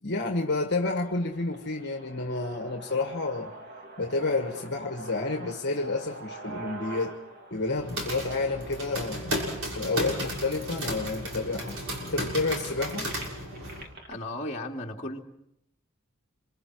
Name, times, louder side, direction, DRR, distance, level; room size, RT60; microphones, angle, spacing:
voice 1, 0.0-3.5 4.0-7.2 7.5-13.1, left 3 dB, 55° left, 3 dB, 1.7 m, -30 dB
sound 1, 0.7-10.7 11.3-11.4 11.7-14.1, right 2 dB, 50° right, 2.6 m, -45 dB
sound 2, 7.6-13.8, equal, 80° right, 6.6 m, -34 dB
voice 2, 14.1-15.2, left 1 dB, 35° left, -1 dB, 2.4 m, -35 dB
27.5 x 24.5 x 4.8 m, 0.81 s
head